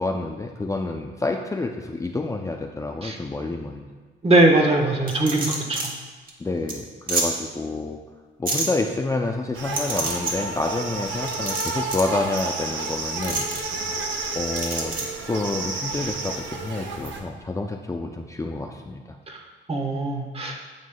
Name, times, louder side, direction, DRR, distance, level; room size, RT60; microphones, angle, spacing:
voice 1, 0.0-3.9 6.4-8.0 8.4-14.0 14.3-19.2, left 2 dB, 15° left, 2 dB, 0.5 m, -28 dB
voice 2, 4.2-5.8 19.3-19.4 19.7-20.5, right 2 dB, 30° right, 1 dB, 1.3 m, -20 dB
sound 1, 5.1-5.9 6.3-6.4 6.7-6.8 7.1-7.3 8.5-8.7 9.7-10.3 11.3-12.1 13.2-13.6 14.6-15.0, right 3 dB, 45° right, 1.6 m, -27 dB
sound 2, 9.5-17.2, right 3 dB, 75° right, 1.0 m, -31 dB
9.4 x 7.3 x 2.3 m, 1.3 s
cardioid pair, 90°, 20 cm